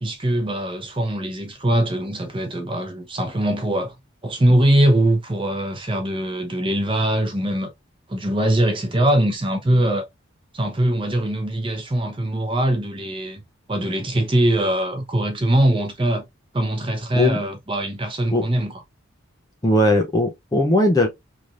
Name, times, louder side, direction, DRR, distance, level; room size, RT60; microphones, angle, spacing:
voice 1, 0.0-3.9 4.2-7.7 8.1-10.1 10.5-13.4 13.7-16.2 16.5-18.7, right 1 dB, 25° right, 0.7 m, -22 dB
voice 2, 19.6-21.1, left 1 dB, 15° left, 0.4 m, -18 dB
3.2 x 2.7 x 2.4 m
head